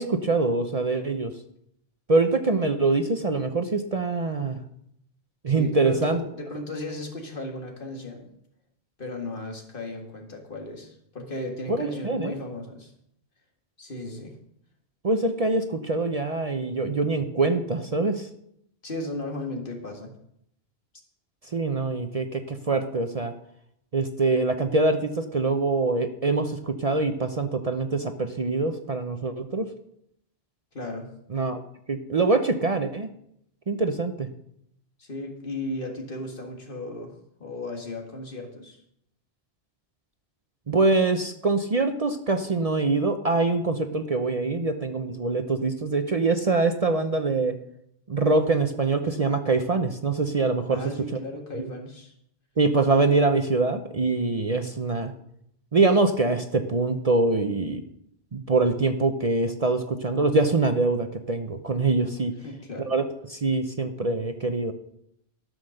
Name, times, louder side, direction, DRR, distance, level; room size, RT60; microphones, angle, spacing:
voice 1, 0.0-1.3 2.1-4.6 5.4-6.2 11.7-12.4 15.0-18.3 21.5-23.3 23.9-29.7 31.3-31.6 31.9-33.1 33.7-34.3 40.7-47.6 48.1-50.8 51.5-51.6 52.6-55.1 55.7-57.8 58.3-62.3 62.9-63.0 63.3-64.7, right 3 dB, 40° right, 7 dB, 0.7 m, -24 dB
voice 2, 5.5-8.3 9.0-12.9 13.8-14.4 18.8-20.1 30.7-31.1 35.0-38.8 50.7-52.1 62.4-62.9, left 2 dB, 55° left, 2 dB, 2.0 m, -35 dB
13.0 x 6.4 x 6.5 m, 0.74 s
omnidirectional pair, 1.1 m